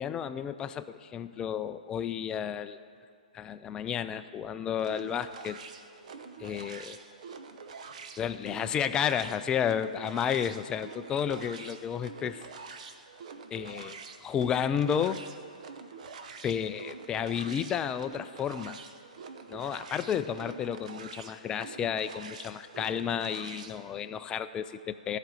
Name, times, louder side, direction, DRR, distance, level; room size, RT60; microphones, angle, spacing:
voice 1, 0.0-2.8 3.3-5.6 6.4-7.0 8.2-12.4 13.5-15.2 16.4-18.8 19.5-25.2, left 8 dB, 15° left, 11 dB, 0.4 m, -32 dB
sound 1, 4.8-23.8, right 5 dB, 55° right, 0.8 m, -46 dB
14.5 x 5.1 x 7.4 m, 2.5 s
figure-of-eight pair, 125°, 4 cm